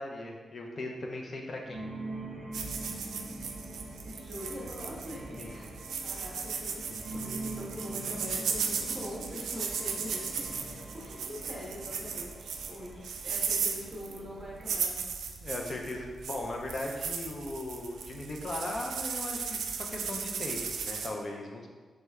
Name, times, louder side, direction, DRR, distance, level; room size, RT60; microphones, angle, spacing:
voice 1, 0.0-1.8 5.4-5.6 15.4-21.7, left 2 dB, 35° left, 1 dB, 0.5 m, -38 dB
sound 1, 1.6-14.9, right 2 dB, 50° right, 0.9 m, -44 dB
sound 2, 2.5-21.1, right 6 dB, 85° right, 0.3 m, -36 dB
voice 2, 4.1-5.7 5.9-15.0, equal, 20° right, -6 dB, 1.1 m, -43 dB
3.2 x 3.2 x 3.5 m, 1.4 s
wide cardioid pair, 165°, 0 cm